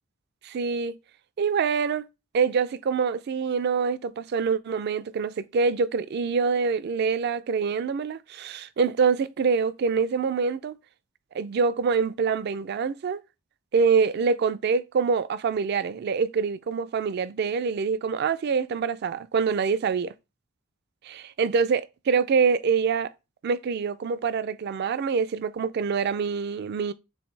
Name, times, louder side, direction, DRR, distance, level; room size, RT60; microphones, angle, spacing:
voice 1, 0.4-1.0 1.4-2.1 2.3-10.7 11.3-13.2 13.7-20.1 21.0-23.1 23.4-26.9, right 5 dB, 50° right, 0.3 m, -25 dB
6.2 x 2.6 x 3.2 m
head